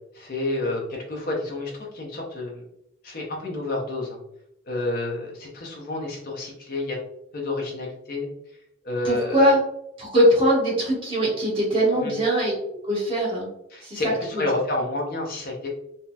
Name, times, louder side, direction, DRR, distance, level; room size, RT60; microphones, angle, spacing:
voice 1, 0.1-2.7 3.0-4.2 4.7-7.0 7.3-8.3 8.8-9.4 12.0-12.1 13.7-15.7, left 2 dB, 45° left, -1 dB, 0.6 m, -29 dB
voice 2, 9.0-9.6 10.0-12.6 12.8-13.5 13.8-14.0 14.3-14.4, equal, 25° right, -6 dB, 1.1 m, -21 dB
4.0 x 2.1 x 2.2 m, 0.79 s
head